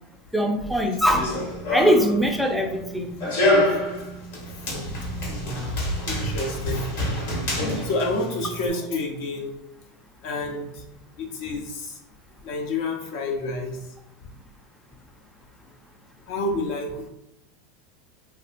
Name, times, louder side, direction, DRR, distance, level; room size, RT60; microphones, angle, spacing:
voice 1, 0.3-1.3 1.7-3.1, equal, ahead, 2 dB, 0.5 m, -21 dB
Run, 1.0-8.7, left 1 dB, 80° left, 1.4 m, -27 dB
voice 2, 5.3-5.7 6.1-6.9 7.8-9.5 10.2-10.8 11.2-12.0 12.4-13.8 16.3-17.1, left 2 dB, 65° left, 1 dB, 0.7 m, -29 dB
3.3 x 2.7 x 2.5 m, 0.83 s
supercardioid pair, 135°, 0 cm